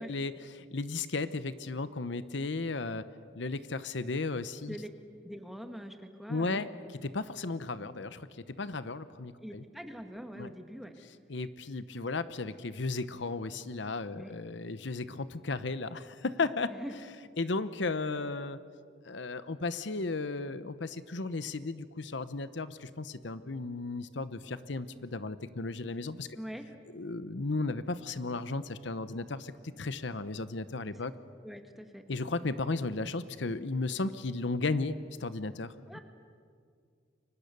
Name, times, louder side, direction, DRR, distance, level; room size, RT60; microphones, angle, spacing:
voice 1, 0.0-3.0 3.3-4.8 6.3-6.7 7.0-8.3 8.6-9.6 10.4-10.5 11.3-16.7 17.4-18.6 19.0-26.3 26.9-31.1 32.1-36.0, left 3 dB, 70° left, 13 dB, 0.9 m, -35 dB
voice 2, 5.2-6.7 9.4-10.9 14.1-14.3 16.7-16.9 26.3-26.7 31.4-32.1 35.9-36.0, equal, ahead, 5 dB, 1.6 m, -43 dB
30.0 x 24.0 x 6.8 m, 2.2 s
head